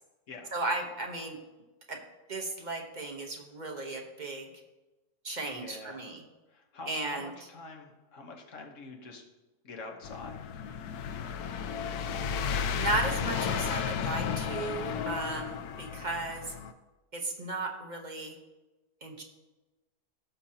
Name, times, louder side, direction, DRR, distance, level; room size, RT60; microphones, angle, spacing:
voice 1, 0.5-1.4 1.9-2.0 2.3-4.5 5.2-6.2 6.9-7.3 12.7-16.5 17.1-18.3 19.0-19.2, right 2 dB, 35° right, 2 dB, 1.0 m, -35 dB
voice 2, 5.5-6.0 6.5-9.2 9.6-10.4, left 3 dB, 55° left, 2 dB, 1.5 m, -46 dB
sound 1, 10.0-16.7, left 7 dB, 75° left, 1.1 m, -33 dB
16.5 x 6.0 x 2.9 m, 1.1 s
omnidirectional pair, 1.7 m